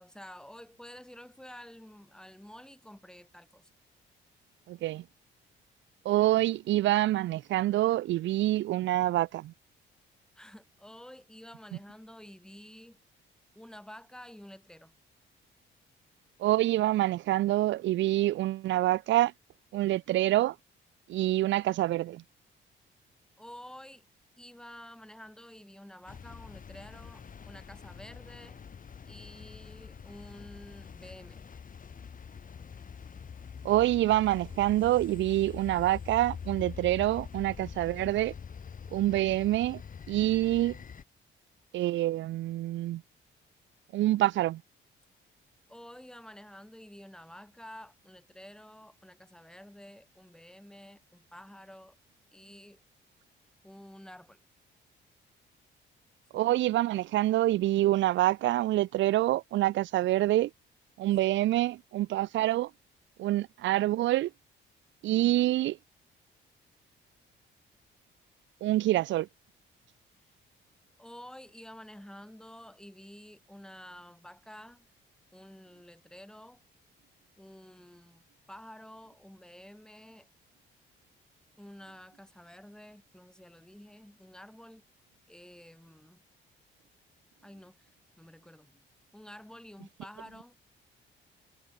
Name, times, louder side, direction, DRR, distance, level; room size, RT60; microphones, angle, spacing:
voice 1, 0.0-3.7 10.3-13.0 13.5-14.9 23.4-24.0 24.4-28.6 29.0-31.5 45.7-52.0 52.3-52.8 53.6-54.4 71.0-74.9 75.3-76.6 77.4-80.3 81.6-84.9 85.3-86.2 87.4-87.9 88.2-88.9 89.1-90.6, equal, 5° left, 6.3 m, -50 dB
voice 2, 4.7-5.0 6.1-9.5 16.4-19.3 19.7-20.5 21.1-22.2 33.6-38.3 38.9-39.8 40.1-40.7 41.7-43.0 43.9-44.6 56.3-60.5 61.0-62.7 63.2-64.3 65.0-65.8 68.6-69.3, right 15 dB, 70° right, 0.5 m, -26 dB
sound 1, 26.1-41.0, left 6 dB, 45° left, 2.4 m, -45 dB
cardioid pair, 90°, 20 cm